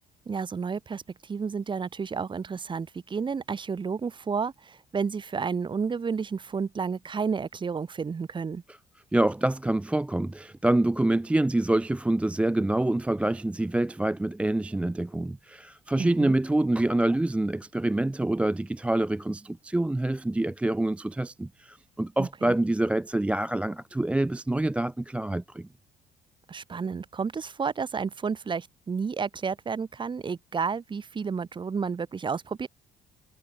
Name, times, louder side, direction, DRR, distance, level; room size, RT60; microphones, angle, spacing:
voice 1, 0.2-8.6 15.9-16.3 22.2-22.5 26.5-32.7, right 5 dB, 30° right, 1.5 m, -31 dB
voice 2, 9.1-25.7, right 1 dB, 5° right, 0.4 m, -26 dB
cardioid pair, 110°, 17 cm